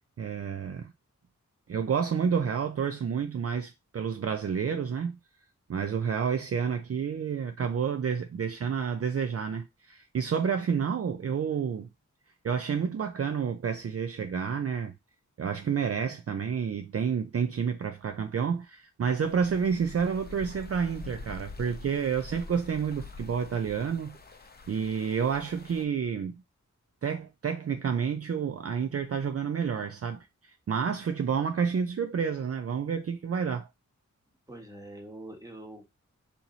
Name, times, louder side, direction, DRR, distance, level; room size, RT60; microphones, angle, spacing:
voice 1, 0.2-0.9 1.7-5.2 5.7-11.9 12.4-14.9 15.4-24.2 24.7-26.3 27.0-33.7, right 6 dB, 50° right, 0.4 m, -29 dB
sound 1, 19.2-25.9, left 3 dB, 30° left, 0.7 m, -46 dB
voice 2, 34.5-35.9, right 1 dB, 10° right, 1.4 m, -44 dB
4.4 x 2.8 x 3.9 m
wide cardioid pair, 115°, 31 cm